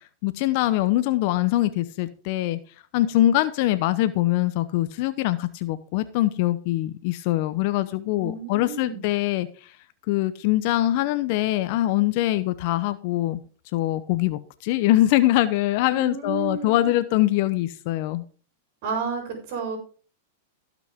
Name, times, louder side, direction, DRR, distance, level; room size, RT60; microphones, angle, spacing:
voice 1, 0.2-2.6 2.9-9.7 10.1-13.4 13.7-18.2, left 15 dB, 55° left, 12 dB, 0.7 m, -23 dB
voice 2, 8.2-9.1 15.9-16.9 18.8-19.8, right 5 dB, 55° right, 2 dB, 4.3 m, -31 dB
16.5 x 6.0 x 3.6 m, 0.40 s
hypercardioid pair, 125°, 0 cm